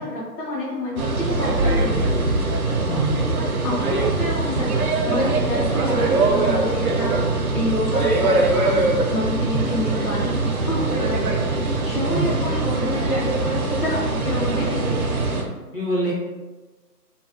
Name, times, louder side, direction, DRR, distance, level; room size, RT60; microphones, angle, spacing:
voice 1, 0.0-2.2 3.4-11.3 11.6-14.9, left 1 dB, 60° left, -8 dB, 0.8 m, -29 dB
sound 1, 1.0-15.4, right 2 dB, 60° right, 0.5 m, -22 dB
voice 2, 2.9-3.5 9.5-9.7 12.1-12.5 15.7-16.1, right 1 dB, 35° left, -8 dB, 0.5 m, -26 dB
2.5 x 2.4 x 2.3 m, 1.2 s
hypercardioid pair, 170°, 49 cm